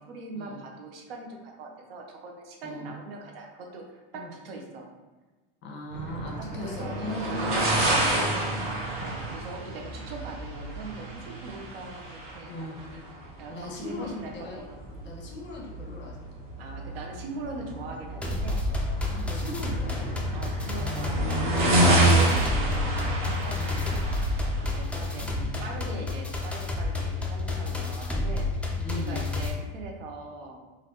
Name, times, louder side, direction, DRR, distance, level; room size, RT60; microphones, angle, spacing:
voice 1, 0.0-4.9 6.2-8.4 9.0-12.5 12.9-14.8 16.6-18.6 20.3-30.7, right 3 dB, 85° right, 1 dB, 0.7 m, -42 dB
voice 2, 5.6-8.5 12.5-12.8 13.5-14.6 15.0-16.2 18.9-20.1 20.8-21.5 23.5-23.8 25.2-25.7 28.8-29.2, left 2 dB, 40° left, -2 dB, 1.0 m, -39 dB
sound 1, 5.9-25.6, right 1 dB, 50° right, 0.9 m, -29 dB
sound 2, 18.2-29.5, left 3 dB, 5° left, 0.3 m, -30 dB
3.2 x 2.5 x 2.9 m, 1.2 s
supercardioid pair, 100°, 29 cm